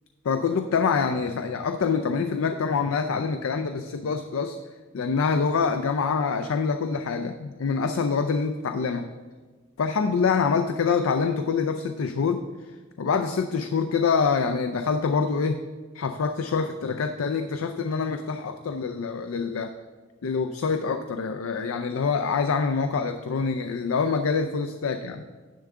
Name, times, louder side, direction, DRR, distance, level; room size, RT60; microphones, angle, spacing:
voice 1, 0.2-4.6 4.9-9.1 9.8-12.5 13.0-15.6 15.9-19.7 20.2-25.2, left 5 dB, 80° left, 8 dB, 0.4 m, -25 dB
10.0 x 3.6 x 6.6 m, 1.4 s
head